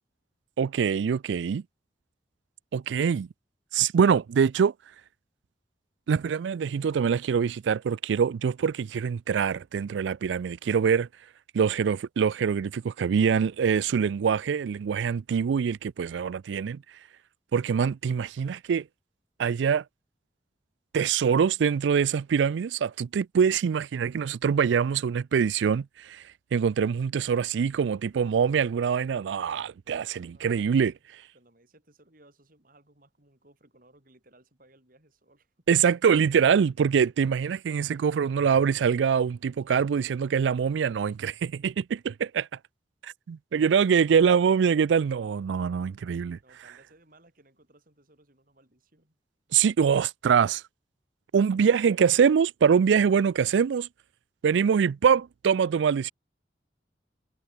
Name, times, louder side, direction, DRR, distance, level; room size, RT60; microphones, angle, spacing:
voice 1, 0.6-1.6 2.7-3.3 3.7-4.7 6.1-11.1 11.5-16.8 17.5-18.8 19.4-19.8 20.9-26.2 26.5-30.9 35.7-42.5 43.0-46.4 49.5-50.6 51.3-53.9 54.4-56.1, right 7 dB, 85° right, 0.4 m, -24 dB
voice 2, 30.2-30.8 31.3-35.5 46.4-49.1, right 1 dB, 50° right, 6.5 m, -60 dB
head